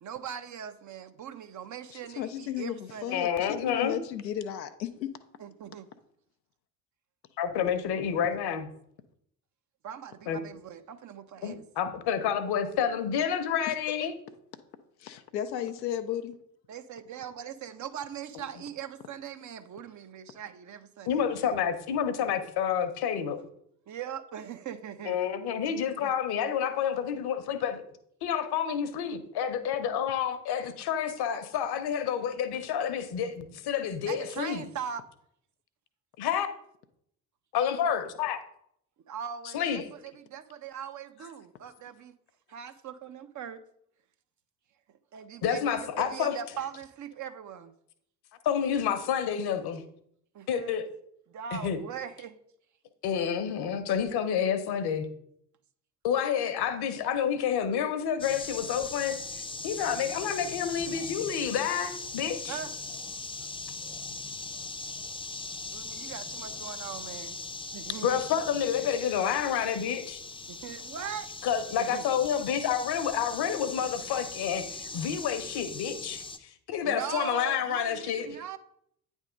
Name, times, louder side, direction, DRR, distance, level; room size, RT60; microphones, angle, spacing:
voice 1, 0.0-3.3 5.4-5.9 9.8-11.6 16.7-21.6 23.9-25.2 26.0-26.1 34.1-35.0 39.1-42.1 42.5-43.6 45.1-47.7 50.3-50.8 51.3-52.4 62.5-62.7 65.7-67.4 67.7-68.2 70.5-71.3 71.9-72.0 76.8-78.6, right 8 dB, 40° right, 10 dB, 0.6 m, -40 dB
voice 2, 1.9-5.1 13.7-13.8 14.0-14.1 15.0-16.4, left 10 dB, 90° left, 7 dB, 0.6 m, -34 dB
voice 3, 3.1-4.0 7.4-8.7 10.3-10.4 11.4-14.1 21.1-23.4 25.0-27.8 28.2-34.6 36.2-36.5 37.5-38.4 39.5-39.9 45.4-46.3 48.4-49.8 50.5-50.8 51.5-51.8 53.0-55.1 56.0-59.2 59.6-62.6 68.0-70.2 71.4-78.4, left 8 dB, 50° left, 10 dB, 1.0 m, -29 dB
sound 1, 58.2-76.4, left 3 dB, 10° left, 0.6 m, -40 dB
8.8 x 3.6 x 5.1 m, 0.71 s
hypercardioid pair, 55°, 49 cm